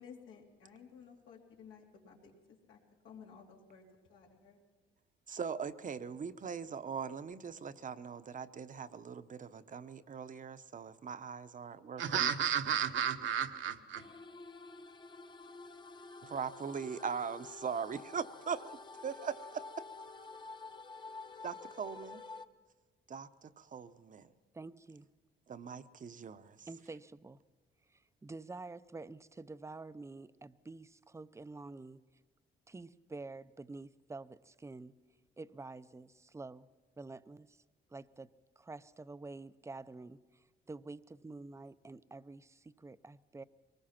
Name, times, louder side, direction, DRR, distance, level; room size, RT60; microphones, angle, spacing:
voice 1, 0.0-2.3 2.7-2.8 3.0-4.6, left 6 dB, 90° left, 0 dB, 3.1 m, -55 dB
voice 2, 5.3-12.3 16.2-19.6 21.4-22.2 23.1-24.3 25.5-26.7, right 6 dB, 40° right, 11 dB, 0.9 m, -41 dB
voice 3, 12.0-14.1, right 9 dB, 70° right, 7 dB, 1.3 m, -33 dB
sound 1, 13.9-22.5, left 3 dB, 25° left, 0.9 m, -50 dB
voice 4, 24.5-25.1 26.7-27.4 27.9-32.0 32.7-34.9 35.4-36.7 37.0-37.6 37.9-38.3 38.6-43.4, right 3 dB, 15° right, 15 dB, 0.6 m, -48 dB
23.0 x 20.0 x 5.8 m, 1.3 s
cardioid pair, 90°, 20 cm